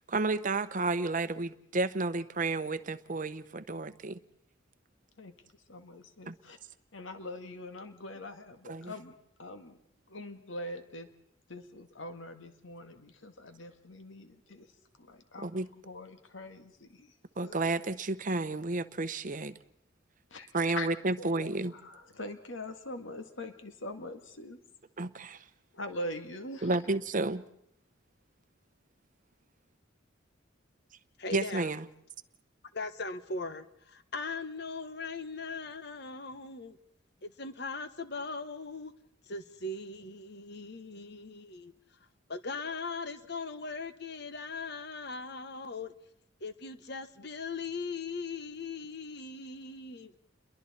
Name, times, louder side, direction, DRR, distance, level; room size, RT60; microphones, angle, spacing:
voice 1, 0.1-4.2 6.3-6.4 8.7-8.9 15.4-15.7 17.4-19.5 20.5-21.7 25.0-25.4 26.6-27.4 31.3-31.9, right 3 dB, 45° right, 0.9 m, -31 dB
voice 2, 5.7-6.6 6.9-9.1 9.4-9.8 10.1-11.1 11.5-14.7 15.0-15.5 15.8-17.2 17.4-17.6 20.3-20.9 21.2-24.6 25.7-26.7, left 1 dB, 85° left, 2.0 m, -43 dB
voice 3, 31.2-31.7 32.7-36.8 37.2-38.9 39.3-41.7 42.3-45.9 46.4-50.1, left 3 dB, 60° left, 1.3 m, -39 dB
29.5 x 22.5 x 4.3 m
head